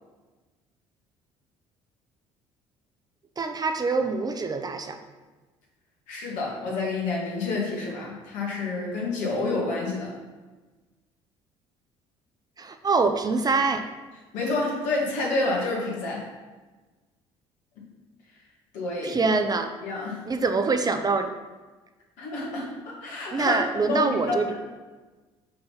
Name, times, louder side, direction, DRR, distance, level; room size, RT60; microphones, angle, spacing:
voice 1, 3.4-5.0 12.6-13.9 19.0-19.7 20.3-21.3 23.3-24.4, right 4 dB, 30° right, 7 dB, 0.7 m, -24 dB
voice 2, 6.1-10.1 14.3-16.3 18.7-19.2 19.8-20.2 22.2-23.6 23.9-24.5, left 3 dB, 75° left, -4 dB, 2.2 m, -29 dB
5.6 x 3.8 x 5.7 m, 1.3 s
hypercardioid pair, 65°, 13 cm